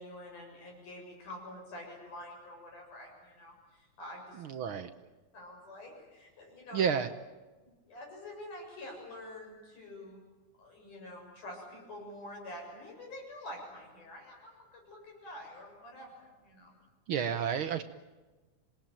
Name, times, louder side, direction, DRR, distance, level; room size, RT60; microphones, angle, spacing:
voice 1, 0.0-4.4 5.3-6.9 7.8-10.2 10.6-16.8, left 1 dB, 80° left, 1 dB, 8.7 m, -47 dB
voice 2, 4.4-4.9 6.7-7.1 17.1-17.8, right 7 dB, 70° right, 8 dB, 1.2 m, -30 dB
27.0 x 20.0 x 9.1 m, 1.2 s
omnidirectional pair, 3.6 m